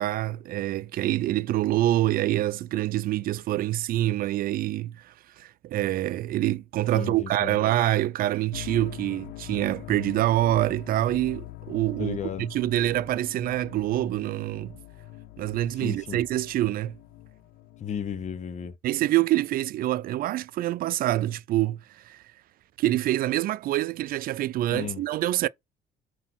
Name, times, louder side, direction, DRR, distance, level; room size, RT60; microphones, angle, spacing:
voice 1, 0.0-14.7 15.4-16.9 18.8-22.2 22.8-25.5, right 14 dB, 60° right, 0.4 m, -26 dB
voice 2, 6.9-7.6 12.0-12.5 15.7-16.2 17.8-18.7 24.7-25.0, left 7 dB, 45° left, 0.9 m, -34 dB
sound 1, 8.5-18.7, left 15 dB, 65° left, 0.4 m, -43 dB
4.5 x 4.0 x 5.7 m
cardioid pair, 110°, 17 cm